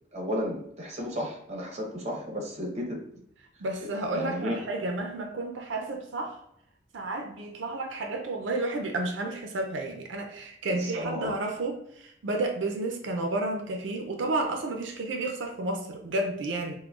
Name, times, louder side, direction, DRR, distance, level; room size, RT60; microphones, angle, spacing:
voice 1, 0.1-3.0 4.1-4.6 10.7-11.3, equal, 35° right, -1 dB, 0.8 m, -33 dB
voice 2, 3.6-6.4 6.9-16.8, right 2 dB, 85° right, 3 dB, 0.5 m, -31 dB
5.8 x 2.1 x 2.4 m, 0.74 s
head